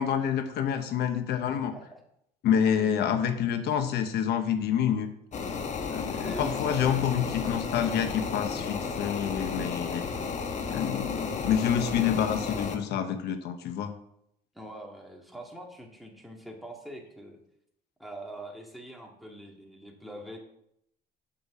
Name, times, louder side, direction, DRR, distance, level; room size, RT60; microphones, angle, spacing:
voice 1, 0.0-1.7 2.4-5.1 5.9-10.1 10.7-13.9, left 8 dB, 75° left, 8 dB, 1.0 m, -28 dB
voice 2, 1.5-2.0 2.8-2.9 6.2-7.0 14.5-17.4 18.0-20.4, right 1 dB, ahead, 1 dB, 2.1 m, -43 dB
sound 1, 5.3-12.8, left 5 dB, 45° left, 1.2 m, -33 dB
7.7 x 6.0 x 7.2 m, 0.77 s
cardioid pair, 110°, 17 cm